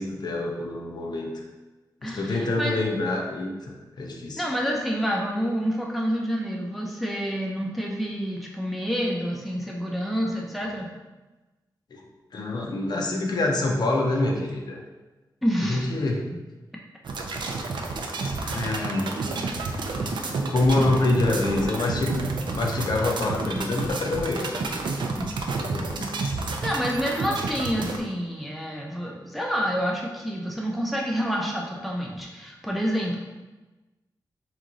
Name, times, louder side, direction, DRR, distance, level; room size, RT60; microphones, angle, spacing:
voice 1, 0.0-1.4 2.0-4.4 11.9-12.0 12.3-14.8 15.7-16.3 18.4-19.1 20.5-24.6 25.6-25.9, left 2 dB, 65° left, 0 dB, 0.6 m, -26 dB
voice 2, 2.0-2.8 4.4-10.9 15.4-15.9 25.2-25.3 26.0-26.1 26.6-33.2, equal, ahead, -2 dB, 0.5 m, -28 dB
sound 1, 17.0-28.0, right 3 dB, 85° right, 0.5 m, -30 dB
3.7 x 3.0 x 3.8 m, 1.2 s
wide cardioid pair, 165°, 8 cm